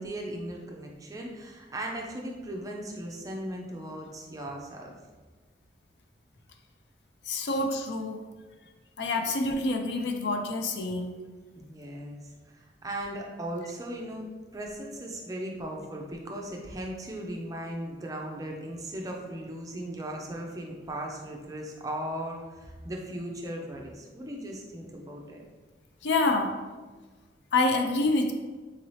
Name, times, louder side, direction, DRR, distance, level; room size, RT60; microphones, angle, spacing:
voice 1, 0.0-4.9 11.6-12.2 12.8-25.4, right 1 dB, 20° right, 0 dB, 0.4 m, -37 dB
voice 2, 7.3-8.2 9.0-11.1 26.0-26.5 27.5-28.3, left 2 dB, 70° left, 4 dB, 0.4 m, -27 dB
3.8 x 2.7 x 3.1 m, 1.3 s
head